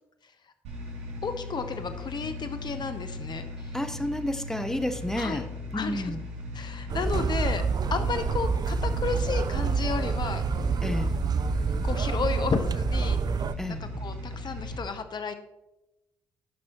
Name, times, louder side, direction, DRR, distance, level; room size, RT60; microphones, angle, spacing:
sound 1, 0.6-14.8, left 1 dB, 70° right, 2.9 m, -38 dB
voice 1, 1.2-3.7 5.2-5.5 5.7-6.1 6.5-7.6 7.9-10.4 11.8-13.2 13.7-15.3, left 5 dB, 45° left, 8 dB, 1.0 m, -32 dB
voice 2, 3.7-5.5 5.7-6.2 10.8-11.1 13.6-13.8, left 1 dB, 5° left, 8 dB, 1.0 m, -30 dB
sound 2, 6.9-13.6, right 5 dB, 40° right, 0.5 m, -27 dB
14.5 x 6.0 x 3.0 m, 0.96 s
hypercardioid pair, 50°, 11 cm